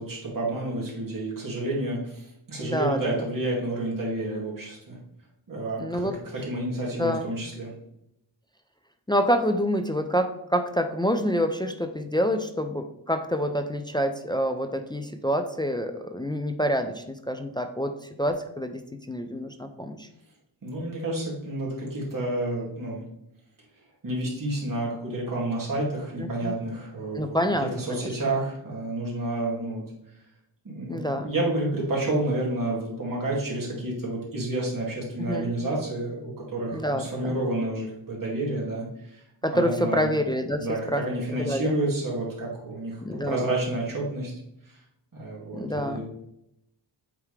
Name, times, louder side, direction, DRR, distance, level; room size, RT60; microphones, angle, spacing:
voice 1, 0.0-5.0 5.5-6.0 6.4-7.7 20.6-23.0 24.0-29.8 30.6-39.2 39.5-40.1 40.6-44.3 45.1-46.0, right 2 dB, 45° right, -4 dB, 2.4 m, -30 dB
voice 2, 2.6-3.3 5.8-6.2 7.0-7.3 9.1-17.9 18.2-20.1 26.2-26.5 27.1-28.1 30.9-31.3 35.2-35.5 36.7-37.4 39.4-41.0 41.4-41.7 43.0-43.4 45.5-46.0, equal, 10° left, 6 dB, 0.4 m, -27 dB
8.3 x 3.5 x 3.2 m, 0.80 s
wide cardioid pair, 125°, 46 cm